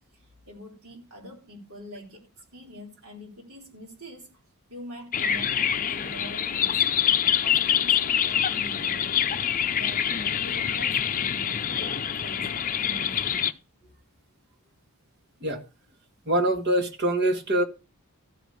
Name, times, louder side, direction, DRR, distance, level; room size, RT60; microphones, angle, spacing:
voice 1, 0.1-2.2 2.5-4.3 4.7-6.9 7.4-9.2 9.7-13.5, equal, 70° right, 4.2 m, -44 dB
sound 1, 5.1-13.5, left 9 dB, 35° left, 0.6 m, -25 dB
voice 2, 16.3-17.6, right 1 dB, 50° right, 1.8 m, -24 dB
14.0 x 5.1 x 6.4 m
head